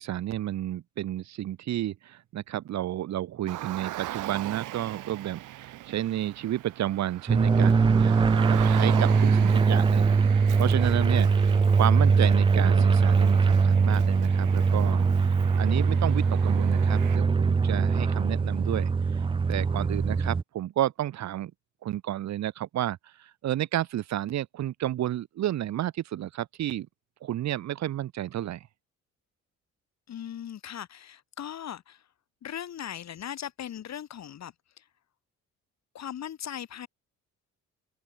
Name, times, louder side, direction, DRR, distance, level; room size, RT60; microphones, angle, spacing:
voice 1, 0.0-18.9 19.5-21.5 21.8-26.9 27.2-28.6, right 12 dB, 65° right, 0.9 m, -31 dB
Car, 3.5-17.2, right 15 dB, 85° right, 2.3 m, -40 dB
sound 1, 7.3-20.4, right 5 dB, 15° right, 0.4 m, -22 dB
voice 2, 30.1-32.1 32.4-34.9 35.9-36.9, left 10 dB, 60° left, 2.9 m, -39 dB
cardioid pair, 90°, 30 cm